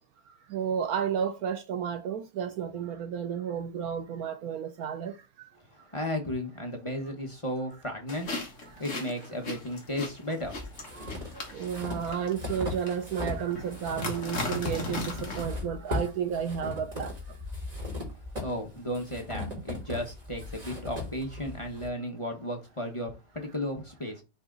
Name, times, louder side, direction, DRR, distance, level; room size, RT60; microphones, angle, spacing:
voice 1, 0.3-5.5 8.7-8.8 10.9-17.4, right 8 dB, 75° right, 0.8 m, -32 dB
voice 2, 5.6-8.5 8.8-11.0 18.2-24.2, left 1 dB, 20° left, 0.9 m, -35 dB
sound 1, 8.1-15.4, left 2 dB, 40° left, 1.8 m, -38 dB
sound 2, 10.4-13.4 13.7-21.9, left 2 dB, 20° right, 2.5 m, -37 dB
7.0 x 3.6 x 3.9 m
omnidirectional pair, 2.1 m